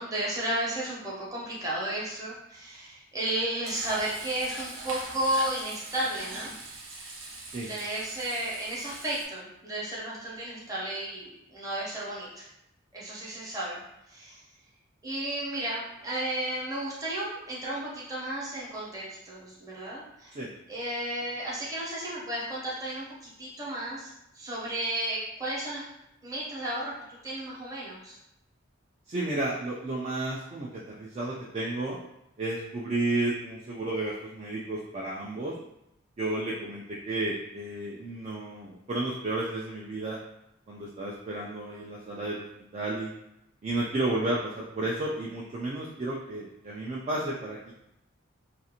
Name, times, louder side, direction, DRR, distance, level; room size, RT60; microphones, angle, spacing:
voice 1, 0.0-6.5 7.7-12.5 12.9-13.8 14.1-14.4 15.0-20.3 20.7-25.8 26.2-28.2, right 1 dB, 20° right, -7 dB, 0.8 m, -33 dB
Frying (food), 3.6-9.3, right 2 dB, 85° right, 0.7 m, -41 dB
voice 2, 29.1-32.0 32.4-35.5 36.2-40.2 40.7-42.4 42.7-43.1 43.6-47.7, right 2 dB, 35° right, -4 dB, 0.3 m, -32 dB
2.4 x 2.4 x 2.8 m, 0.83 s
head